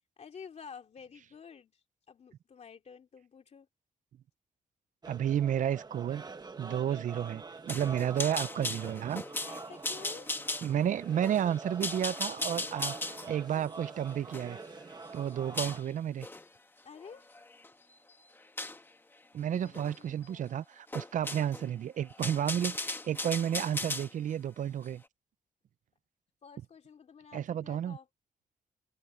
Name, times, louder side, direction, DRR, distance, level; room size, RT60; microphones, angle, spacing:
voice 1, 0.2-1.7 2.1-3.7 9.4-10.3 16.8-17.3 19.6-20.5 26.4-28.1, left 6 dB, 50° left, 2.6 m, -50 dB
sound 1, 5.0-15.8, right 4 dB, 30° right, 1.4 m, -46 dB
voice 2, 5.1-6.2 6.6-9.2 10.6-13.0 13.3-14.6 15.1-16.3 19.3-25.0 27.3-28.0, right 10 dB, 65° right, 0.5 m, -32 dB
sound 2, 7.7-15.8 16.2-16.5 17.0-17.7 18.6-18.8 19.7-20.0 20.2-20.3 20.9-21.7 22.0-24.1, left 2 dB, 15° left, 1.2 m, -37 dB
wide cardioid pair, 140°, 14 cm